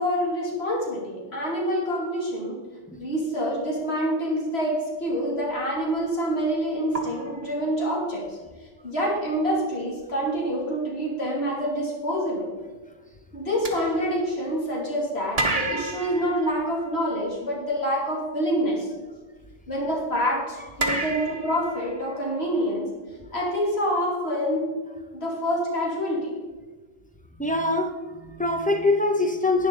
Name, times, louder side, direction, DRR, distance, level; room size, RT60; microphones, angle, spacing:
voice 1, 0.0-2.6 3.0-8.4 8.8-12.5 13.3-18.9 19.7-22.9 23.3-24.8 25.1-26.3, equal, 55° left, -3 dB, 2.9 m, -26 dB
sound 1, 5.8-6.0 6.9-8.3 9.5-9.6 10.0-10.2 13.6-14.8 15.3-17.5 20.8-22.6, right 2 dB, 30° right, 1.2 m, -31 dB
voice 2, 27.4-27.9 28.2-29.7, left 2 dB, 10° left, 4 dB, 0.7 m, -23 dB
11.5 x 9.5 x 3.9 m, 1.3 s
omnidirectional pair, 1.3 m